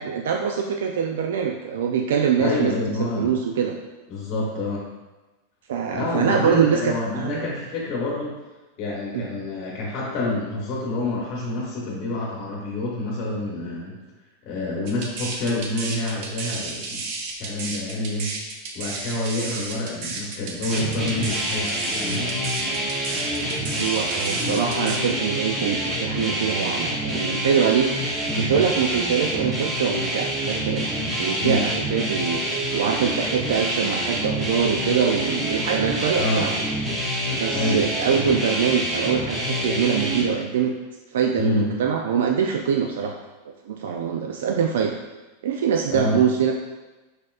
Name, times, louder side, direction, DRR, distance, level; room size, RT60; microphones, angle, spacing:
voice 1, 0.0-2.7 3.2-3.8 5.7-7.5 9.1-9.2 23.7-28.1 28.4-30.9 31.2-36.5 37.3-40.7 41.1-43.2 43.5-45.0 45.4-46.5, right 7 dB, 85° right, 2 dB, 0.3 m, -24 dB
voice 2, 2.4-3.3 4.1-4.9 5.9-8.4 8.8-13.9 14.4-17.0 17.4-18.3 18.7-22.4 28.3-28.6 31.4-31.6 36.1-36.5 37.5-37.8 41.4-41.7 45.9-46.2, left 2 dB, 35° left, -4 dB, 1.0 m, -27 dB
sound 1, 14.9-25.0, right 3 dB, 45° right, 0.7 m, -33 dB
sound 2, 20.7-40.2, right 1 dB, 15° right, 0.8 m, -27 dB
4.9 x 4.2 x 2.4 m, 1.1 s
supercardioid pair, 165°, 0 cm